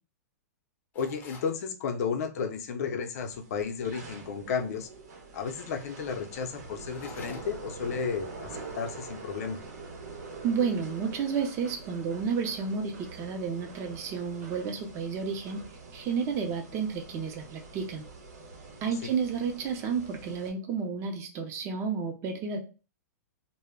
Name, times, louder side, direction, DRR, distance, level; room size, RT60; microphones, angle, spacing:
voice 1, 0.9-4.9 5.3-9.6 19.0-19.1, left 6 dB, 65° left, 5 dB, 0.6 m, -33 dB
sound 1, 0.9-1.6 6.8-7.8, left 3 dB, 20° left, 0.5 m, -47 dB
sound 2, 3.1-20.5, right 3 dB, 80° right, 0.7 m, -45 dB
voice 2, 10.4-15.6 15.9-18.1 18.8-22.6, right 6 dB, 30° right, 2 dB, 0.5 m, -31 dB
2.1 x 2.1 x 3.5 m, 0.33 s
hypercardioid pair, 130°, 9 cm